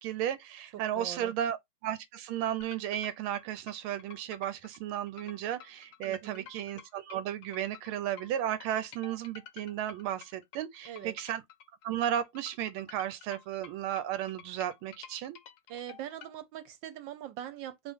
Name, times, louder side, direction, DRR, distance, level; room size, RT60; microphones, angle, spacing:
voice 1, 0.0-1.6 1.8-11.4 11.8-15.4, right 11 dB, 90° right, 1.5 m, -34 dB
voice 2, 0.7-1.3 6.0-6.5 10.8-11.1 15.7-17.9, right 11 dB, 70° right, 1.3 m, -42 dB
sound 1, 2.6-16.3, left 9 dB, 70° left, 0.9 m, -51 dB
4.3 x 3.0 x 3.5 m
omnidirectional pair, 2.3 m